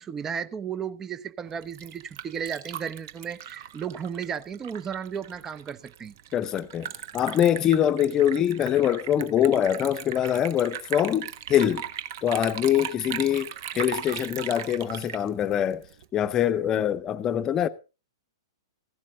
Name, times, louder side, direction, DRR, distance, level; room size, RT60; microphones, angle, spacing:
voice 1, 0.0-6.1, right 7 dB, 20° right, 0.8 m, -34 dB
Liquid, 1.5-16.1, right 10 dB, 50° right, 1.2 m, -38 dB
voice 2, 6.3-11.8 12.2-15.9 16.1-17.7, left 10 dB, 25° left, 0.9 m, -24 dB
15.5 x 12.0 x 3.6 m
figure-of-eight pair, 110°, 2 cm